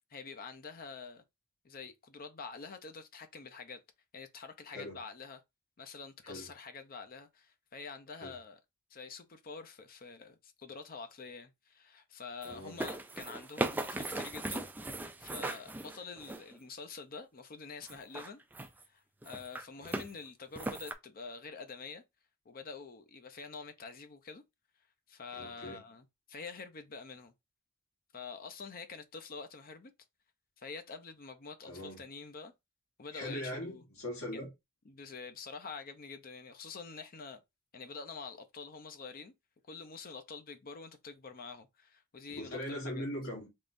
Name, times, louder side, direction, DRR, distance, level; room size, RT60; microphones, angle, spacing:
voice 1, 0.1-1.2 1.6-3.8 4.1-5.4 5.8-8.6 8.9-14.6 15.2-18.4 18.8-22.0 22.5-24.4 25.1-27.3 28.1-29.9 30.6-32.5 33.0-33.8 34.3-34.4 34.9-37.4 37.7-39.3 39.7-43.1, left 4 dB, 45° left, 0.6 m, -47 dB
voice 2, 12.4-12.8 19.8-20.1 25.3-25.8 31.7-32.0 33.1-34.5 42.3-43.5, equal, 75° left, 1.9 m, -40 dB
sound 1, 12.4-16.6 17.8-18.8 19.2-20.1 20.6-20.9, right 2 dB, 10° right, 0.3 m, -38 dB
3.6 x 3.1 x 2.6 m
head